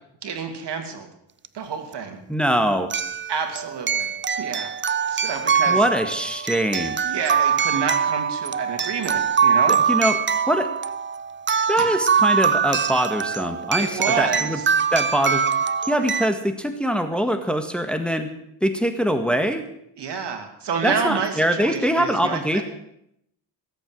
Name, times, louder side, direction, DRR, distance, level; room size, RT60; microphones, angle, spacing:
voice 1, 0.2-1.1 1.5-2.2 3.3-4.7 5.1-5.8 7.0-9.8 11.8-11.9 13.8-14.6 20.0-22.6, right 6 dB, 65° right, 5 dB, 2.9 m, -29 dB
sound 1, 1.5-1.6 2.9-16.3, right 6 dB, 25° right, 0.6 m, -23 dB
voice 2, 2.3-2.9 5.7-7.0 9.9-10.2 10.5-10.7 11.7-14.6 14.9-15.4 15.9-18.3 18.6-19.6 20.8-22.6, equal, ahead, 6 dB, 1.7 m, -23 dB
18.0 x 8.2 x 7.9 m, 0.76 s
cardioid pair, 70°, 44 cm